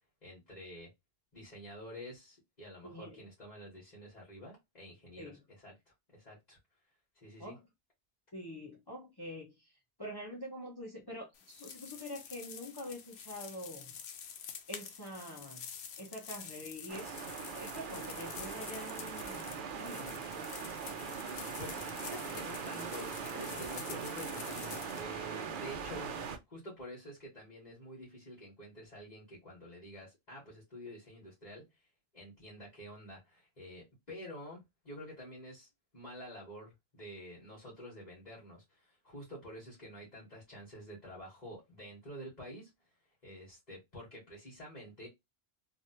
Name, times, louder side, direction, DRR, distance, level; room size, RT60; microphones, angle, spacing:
voice 1, 0.2-0.9 1.3-5.7 6.1-6.6 7.2-7.6 21.6-26.1 26.5-31.7 32.1-35.7 35.9-42.7 43.2-45.1, equal, 45° left, 1.5 m, -49 dB
voice 2, 2.8-3.2 5.2-5.4 7.4-7.6 8.3-9.7 10.0-13.9 14.7-15.6 16.0-20.2, equal, 25° left, 0.9 m, -45 dB
sound 1, 11.3-25.0, left 7 dB, 85° left, 0.9 m, -48 dB
sound 2, 16.9-26.4, right 6 dB, 60° right, 0.7 m, -41 dB
3.1 x 2.6 x 2.7 m
omnidirectional pair, 1.0 m